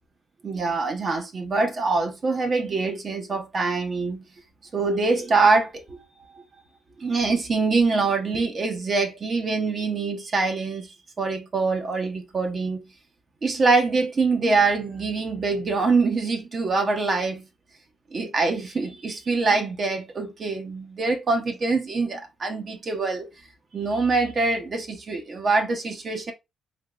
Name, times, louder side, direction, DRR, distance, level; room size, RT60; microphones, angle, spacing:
voice 1, 0.4-4.2 4.7-6.4 7.0-12.8 13.4-17.4 18.1-23.3 23.7-26.3, right 3 dB, 40° right, 0.8 m, -24 dB
3.5 x 2.8 x 2.3 m
cardioid pair, 90°, 0 cm